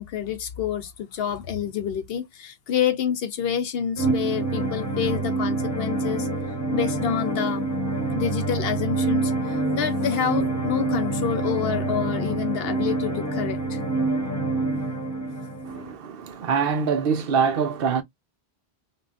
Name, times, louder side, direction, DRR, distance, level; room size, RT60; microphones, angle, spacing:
voice 1, 0.0-6.3 6.7-7.7 8.2-13.8, left 9 dB, 70° left, 0.8 m, -28 dB
sound 1, 4.0-15.9, right 2 dB, 15° left, 0.9 m, -26 dB
voice 2, 15.6-18.0, right 6 dB, 65° right, 0.8 m, -24 dB
3.5 x 2.2 x 2.4 m
omnidirectional pair, 1.1 m